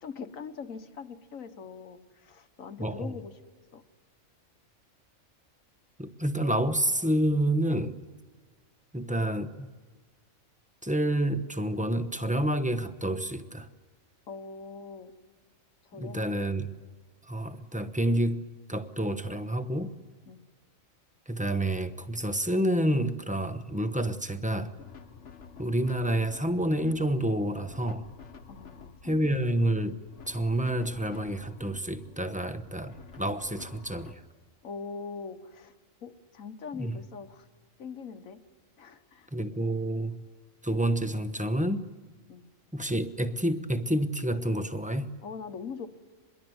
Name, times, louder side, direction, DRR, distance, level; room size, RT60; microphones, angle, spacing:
voice 1, 0.0-3.4 3.7-3.8 14.3-15.1 15.8-16.5 20.3-20.4 28.5-29.4 34.6-35.7 36.0-37.5 37.8-38.4 38.8-39.3 42.3-42.5 45.2-45.9, left 5 dB, 85° left, 9 dB, 1.6 m, -42 dB
voice 2, 2.8-3.1 6.0-8.0 8.9-9.7 10.8-13.7 15.9-16.7 17.3-20.0 21.3-24.7 25.6-28.1 29.0-34.2 36.7-37.0 39.3-40.3 40.6-41.9 42.7-45.1, right 1 dB, 5° right, 10 dB, 0.8 m, -29 dB
sound 1, 24.8-34.1, left 5 dB, 65° left, 1.4 m, -50 dB
25.0 x 21.5 x 7.9 m, 1.4 s
omnidirectional pair, 1.4 m